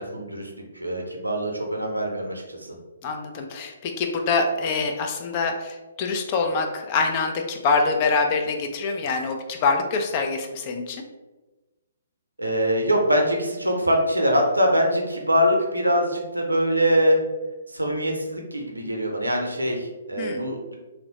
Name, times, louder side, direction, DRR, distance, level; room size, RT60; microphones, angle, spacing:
voice 1, 0.0-2.8 12.4-17.2 17.7-20.7, equal, 90° right, 2 dB, 0.5 m, -23 dB
voice 2, 3.0-11.0 20.2-20.5, left 4 dB, 35° left, 4 dB, 0.4 m, -25 dB
3.0 x 2.0 x 2.8 m, 1.1 s
figure-of-eight pair, 130°, 0 cm